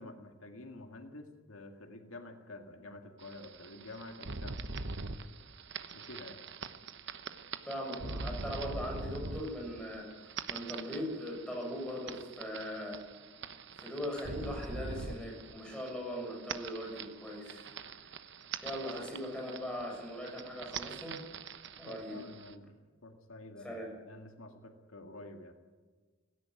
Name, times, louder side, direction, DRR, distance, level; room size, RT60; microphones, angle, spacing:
voice 1, 0.0-4.6 5.9-6.4 21.9-22.7 23.0-25.5, left 2 dB, 75° left, 5 dB, 2.0 m, -49 dB
sound 1, 3.2-22.5, right 4 dB, 60° right, 1.1 m, -44 dB
voice 2, 7.7-13.0 13.8-17.7 18.6-21.2 21.8-22.2 23.6-23.9, equal, 5° left, -1 dB, 7.1 m, -40 dB
17.5 x 17.0 x 9.5 m, 1.4 s
head